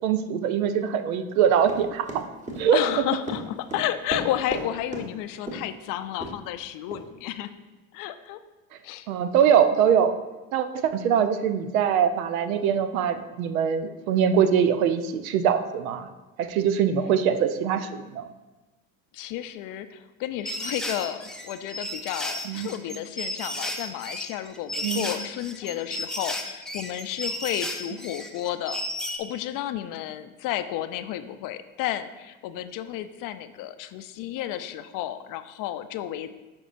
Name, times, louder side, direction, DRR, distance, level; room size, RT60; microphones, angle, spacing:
voice 1, 0.0-2.2 2.6-2.8 9.1-10.1 10.5-16.1 16.4-18.3 22.5-22.7 24.8-25.1, right 8 dB, 85° right, 10 dB, 0.6 m, -23 dB
Run, 1.7-4.6 4.9-5.1 5.5-5.7 6.2-6.3 6.9-7.0, right 1 dB, 15° right, 1.2 m, -34 dB
voice 2, 2.7-7.5 7.9-8.4 8.8-9.1 19.1-28.8 29.2-36.3, left 12 dB, 55° left, 11 dB, 0.5 m, -32 dB
sound 1, 20.5-29.2, left 1 dB, ahead, 0.5 m, -33 dB
7.0 x 5.3 x 2.5 m, 1.1 s
hypercardioid pair, 85°, 41 cm